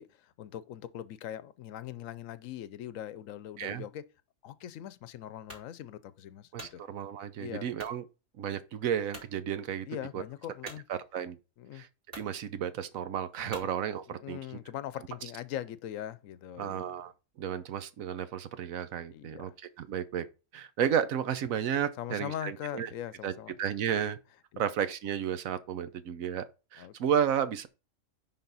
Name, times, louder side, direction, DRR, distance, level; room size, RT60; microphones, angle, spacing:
voice 1, 0.0-4.0 4.4-6.8 7.4-7.8 9.9-10.8 11.6-11.8 13.4-13.7 14.1-16.9 19.1-19.5 22.0-23.5 24.5-24.6 26.8-26.9, left 11 dB, 80° left, 1.0 m, -41 dB
sound 1, 5.5-5.7 6.3-6.8 7.8-8.0 8.5-8.6 9.1-9.3 10.6-10.8 11.6-11.7 12.1-12.3 13.5-13.7, equal, 35° right, 2.6 m, -46 dB
voice 2, 6.5-8.1 8.4-9.9 10.1-10.2 10.9-11.4 11.7-11.9 12.1-14.4 16.6-17.1 17.4-19.5 19.8-20.3 20.5-22.9 23.2-23.3 23.6-24.2 24.6-26.4 26.7-27.7, right 9 dB, 85° right, 1.2 m, -32 dB
10.5 x 3.9 x 4.1 m
omnidirectional pair, 1.4 m